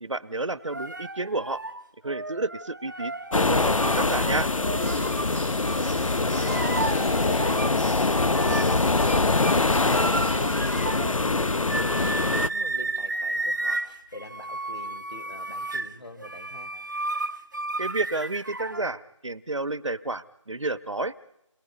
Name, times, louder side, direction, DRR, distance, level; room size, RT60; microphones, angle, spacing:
voice 1, 0.0-1.6 2.0-4.5 17.8-21.1, right 2 dB, 65° right, 14 dB, 1.3 m, -30 dB
sound 1, 0.6-5.3 5.6-7.8 8.1-18.9, right 2 dB, 35° right, 1.1 m, -33 dB
sound 2, 3.3-12.5, left 3 dB, 85° left, 0.9 m, -24 dB
Bird, 4.8-10.8, right 2 dB, 5° right, 1.6 m, -40 dB
voice 2, 5.7-6.7 7.1-16.7, left 1 dB, 55° left, 8 dB, 4.3 m, -43 dB
29.0 x 21.0 x 5.3 m, 0.82 s
figure-of-eight pair, 180°, 17 cm